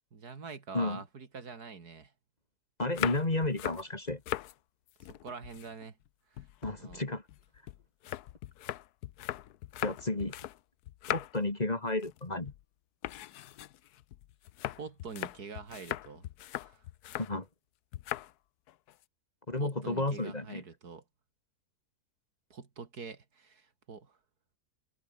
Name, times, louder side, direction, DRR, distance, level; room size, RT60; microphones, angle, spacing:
voice 1, 0.1-2.1 5.0-6.0 6.3-6.5 6.8-7.0 14.8-16.2 16.6-16.8 19.6-21.0 22.5-24.2, right 5 dB, 80° right, 2.9 m, -45 dB
sound 1, 2.8-4.5 4.9-6.1 6.4-10.6 10.8-11.5 11.9-12.2 12.5-12.6 13.0-17.3 17.9-18.3 18.7-19.0, left 13 dB, 80° left, 1.2 m, -39 dB
voice 2, 2.8-4.2 6.6-7.2 9.8-10.3 11.1-12.5 17.3-17.5 19.5-20.6, left 2 dB, 25° left, 2.3 m, -32 dB
omnidirectional pair, 1.6 m